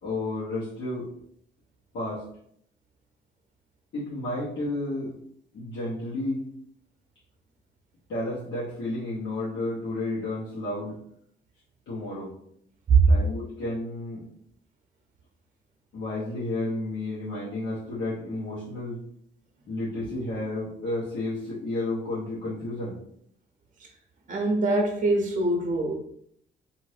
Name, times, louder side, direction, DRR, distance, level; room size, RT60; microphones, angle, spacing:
voice 1, 0.0-1.1 1.9-2.2 3.9-5.1 5.5-6.4 8.1-11.0 11.9-12.3 13.1-14.3 15.9-19.0 19.7-23.0, left 2 dB, 70° left, -10 dB, 1.1 m, -31 dB
voice 2, 24.3-26.0, right 3 dB, 40° right, 1 dB, 0.7 m, -23 dB
2.6 x 2.6 x 3.3 m, 0.70 s
cardioid pair, 90°, 20 cm